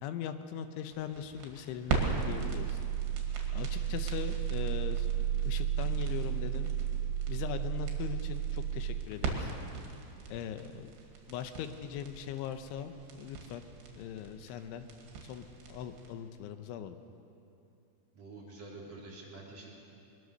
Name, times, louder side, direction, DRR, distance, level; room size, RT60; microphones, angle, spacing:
voice 1, 0.0-2.8 3.5-5.1 5.5-6.7 7.3-9.5 10.3-10.9 11.3-13.6 14.0-14.9 15.2-17.0, left 9 dB, 90° left, 9 dB, 3.4 m, -40 dB
sound 1, 0.9-16.1, right 8 dB, 70° right, 4.4 m, -34 dB
voice 2, 18.1-19.8, right 2 dB, 40° right, -4 dB, 4.2 m, -47 dB
23.0 x 20.0 x 6.6 m, 2.7 s
omnidirectional pair, 5.3 m